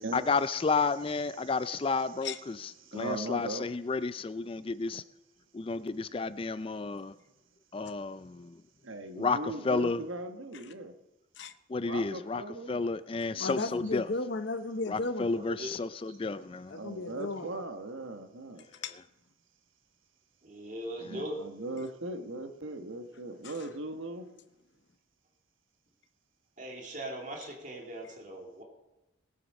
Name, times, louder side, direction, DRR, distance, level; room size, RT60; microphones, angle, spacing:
voice 1, 0.1-2.3 2.9-5.0 5.5-7.1 7.7-8.6 9.2-10.0 11.7-12.4 12.7-14.0 14.9-16.7 21.0-21.2, left 4 dB, 25° left, 0.3 m, -31 dB
voice 2, 2.8-3.7 8.8-10.9 11.8-12.8 13.2-13.8 16.7-18.6 21.0-24.3, right 2 dB, 80° right, 1.2 m, -39 dB
voice 3, 13.4-15.3 16.7-17.6 18.6-19.0 23.4-23.8, left 3 dB, 60° left, 0.7 m, -36 dB
voice 4, 15.4-15.7 16.1-16.2 20.4-21.4 26.6-28.6, right 1 dB, 40° right, 2.3 m, -40 dB
18.5 x 7.9 x 5.3 m
head